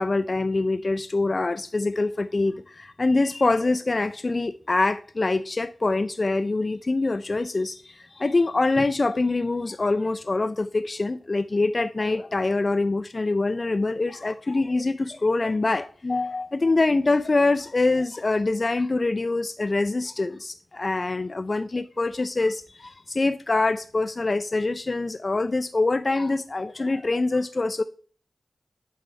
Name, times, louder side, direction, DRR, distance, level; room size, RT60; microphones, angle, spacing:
voice 1, 0.0-27.8, left 3 dB, 45° left, 0.3 m, -24 dB
7.6 x 3.5 x 4.5 m
cardioid pair, 50°, 0 cm